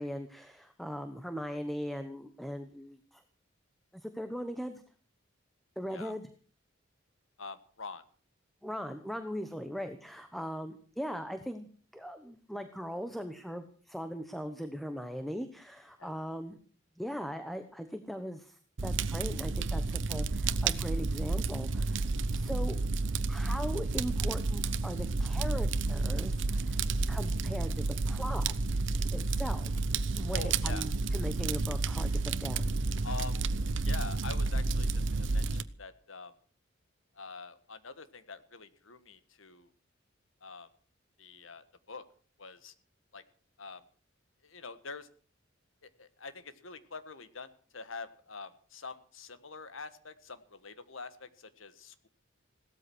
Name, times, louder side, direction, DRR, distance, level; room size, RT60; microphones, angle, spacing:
voice 1, 0.0-3.2 3.9-4.8 5.8-6.3 8.6-16.6 17.0-22.0 22.3-22.8 23.3-26.8 27.1-28.6 29.1-29.7 30.2-32.7, equal, ahead, 9 dB, 1.1 m, -39 dB
voice 2, 7.4-8.0 16.0-16.1 30.3-30.9 33.0-33.4 33.8-36.3 37.2-39.7 40.4-40.7 41.2-42.0 42.4-42.7 43.1-43.2 43.6-43.8 44.4-45.1 45.8-52.1, left 4 dB, 80° left, 12 dB, 1.6 m, -45 dB
Fire, 18.8-35.6, right 3 dB, 65° right, 0.9 m, -31 dB
17.0 x 13.0 x 6.3 m, 0.43 s
head